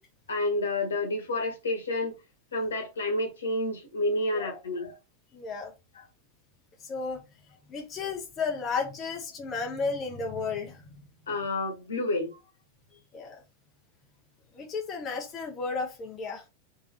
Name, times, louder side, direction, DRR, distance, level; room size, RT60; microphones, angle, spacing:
voice 1, 0.3-2.1 2.5-4.9 5.9-6.0 11.3-12.4, left 2 dB, 65° left, 1.3 m, -29 dB
voice 2, 5.3-5.7 6.8-7.2 7.7-10.8 12.9-13.4 14.5-16.4, left 4 dB, 25° left, 1.0 m, -33 dB
3.4 x 3.0 x 3.8 m
figure-of-eight pair, 90°, 0 cm